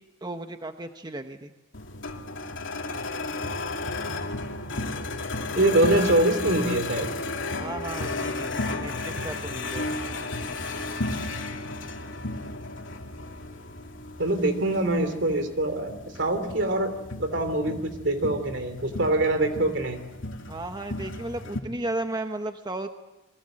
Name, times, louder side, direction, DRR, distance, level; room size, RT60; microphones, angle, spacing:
voice 1, 0.2-1.5 7.6-10.0 20.5-22.9, right 2 dB, 20° right, 6 dB, 1.0 m, -34 dB
sound 1, 1.7-21.6, left 2 dB, 85° left, 2.6 m, -34 dB
voice 2, 5.5-7.1 14.2-20.0, right 1 dB, 65° right, 9 dB, 3.2 m, -24 dB
29.0 x 22.5 x 7.7 m, 1.0 s
head